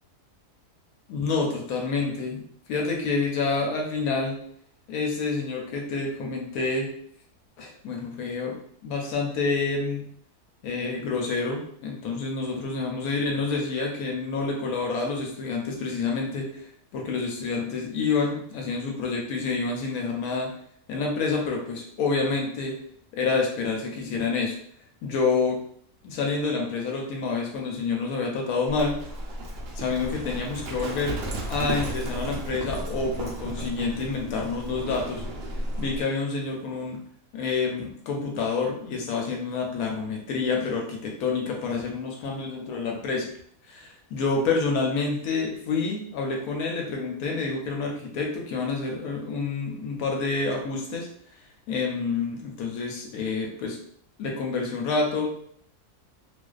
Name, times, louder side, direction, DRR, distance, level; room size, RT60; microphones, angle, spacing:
voice 1, 1.1-4.4 4.9-6.9 7.6-8.6 8.8-10.1 10.6-16.7 16.9-20.5 20.9-22.8 23.1-24.6 25.0-25.6 26.0-29.0 29.7-31.2 31.5-35.2 35.5-37.0 37.3-43.3 43.7-51.1 51.7-53.8 54.2-55.3, left 4 dB, 75° left, 0 dB, 1.0 m, -28 dB
Livestock farm animals working animals, 28.7-36.0, right 1 dB, 90° right, 0.5 m, -34 dB
2.5 x 2.2 x 2.3 m, 0.64 s
omnidirectional pair, 1.7 m